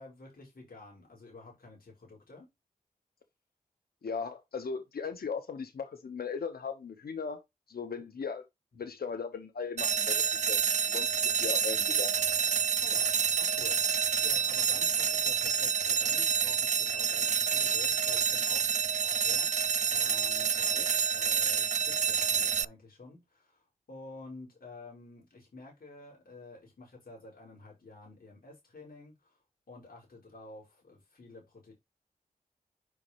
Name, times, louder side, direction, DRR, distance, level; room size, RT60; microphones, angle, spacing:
voice 1, 0.0-2.5 12.8-13.8 14.2-19.5 19.9-20.9 21.1-29.4 29.7-31.7, left 2 dB, 75° left, 5.3 m, -50 dB
voice 2, 4.0-7.4 7.7-8.4 8.8-12.2 20.8-20.9, left 5 dB, 90° left, 1.0 m, -38 dB
sound 1, 9.8-22.6, right 6 dB, 50° right, 0.4 m, -28 dB
8.2 x 5.2 x 3.0 m
cardioid pair, 45°, 15 cm